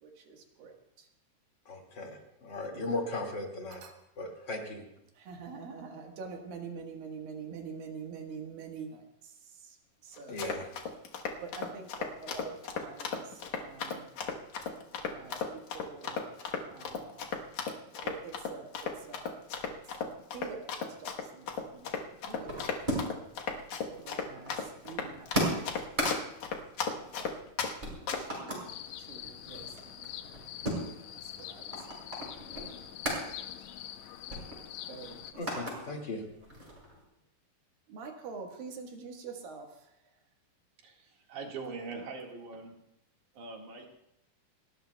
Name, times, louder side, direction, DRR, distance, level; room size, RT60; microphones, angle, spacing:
voice 1, 0.0-1.1 2.6-2.9 3.7-3.9 5.1-9.8 10.0-10.4 11.4-14.1 15.0-15.4 15.7-17.6 18.0-20.7 21.0-22.0 22.2-23.0 23.8-26.0 26.9-27.5 28.2-28.6 29.0-30.6 31.1-32.0 34.9-35.7 37.9-40.1, right 5 dB, 80° right, 2 dB, 3.2 m, -46 dB
voice 2, 1.7-3.8 4.2-4.8 10.3-10.7 35.4-36.2, left 2 dB, 35° left, 1 dB, 2.3 m, -37 dB
Run, 10.2-27.7 28.1-28.4, left 6 dB, 65° left, 2.3 m, -35 dB
sound 1, 21.4-23.3 23.6-27.5 27.8-28.7 29.1-33.2 33.6-33.8 34.0-35.8 36.2-37.0, equal, 10° right, 5.2 m, -37 dB
sound 2, 28.7-35.3, left 11 dB, 85° left, 1.6 m, -45 dB
voice 3, 40.8-42.8 43.3-43.9, right 4 dB, 60° right, 1 dB, 3.1 m, -42 dB
29.0 x 13.0 x 2.3 m, 0.80 s
omnidirectional pair, 4.0 m